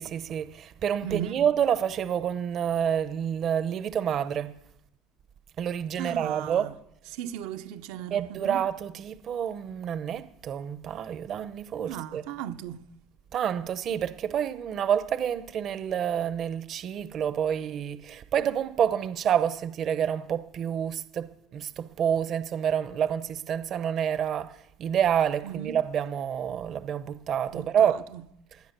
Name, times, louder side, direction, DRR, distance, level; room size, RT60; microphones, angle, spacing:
voice 1, 0.0-4.5 5.6-6.7 8.1-12.2 13.3-28.1, right 9 dB, 35° right, 0.7 m, -28 dB
voice 2, 1.0-1.4 6.0-6.7 7.1-8.6 11.9-12.8 25.4-25.8 27.5-28.2, right 11 dB, 70° right, 0.8 m, -36 dB
19.0 x 10.0 x 6.7 m
cardioid pair, 150°, 0 cm